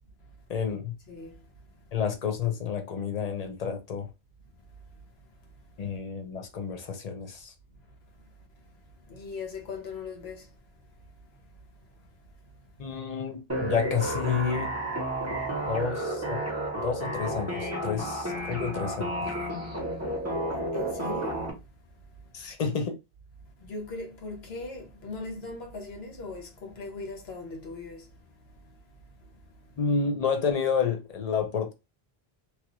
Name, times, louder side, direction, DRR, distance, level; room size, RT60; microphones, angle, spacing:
voice 1, 0.5-0.9 1.9-4.1 5.8-7.5 12.8-14.7 15.7-16.4 16.8-19.1 22.3-23.0 29.8-31.7, left 6 dB, 45° left, 0.7 m, -30 dB
voice 2, 1.1-1.4 9.1-10.5 20.7-21.4 23.6-28.1, left 3 dB, 80° left, 1.1 m, -39 dB
sound 1, 13.5-21.5, right 1 dB, 15° right, 0.9 m, -31 dB
3.0 x 2.4 x 2.9 m
omnidirectional pair, 1.0 m